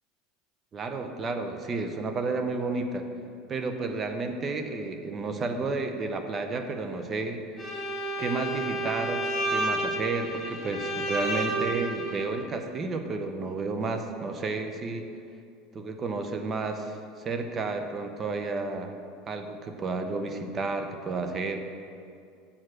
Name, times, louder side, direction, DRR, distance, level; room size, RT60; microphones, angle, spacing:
voice 1, 0.7-3.1 3.5-7.4 8.2-15.1 15.7-17.0 17.2-18.9 19.3-21.6, right 3 dB, 25° right, 6 dB, 0.6 m, -31 dB
Bowed string instrument, 7.6-12.3, right 1 dB, 20° left, 1.5 m, -31 dB
7.2 x 4.6 x 6.3 m, 2.4 s
supercardioid pair, 145°, 0 cm